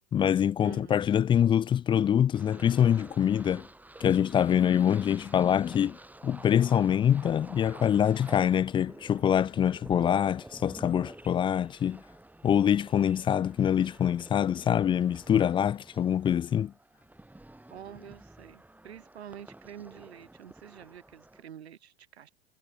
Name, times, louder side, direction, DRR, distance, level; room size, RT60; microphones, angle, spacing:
voice 1, 0.1-3.7 4.0-6.0 6.2-12.0 12.4-16.7, left 9 dB, 15° left, 0.4 m, -25 dB
voice 2, 0.6-1.0 17.7-22.3, right 9 dB, 85° right, 4.2 m, -47 dB
sound 1, 2.3-21.4, right 1 dB, 5° right, 6.9 m, -50 dB
hypercardioid pair, 100°, 31 cm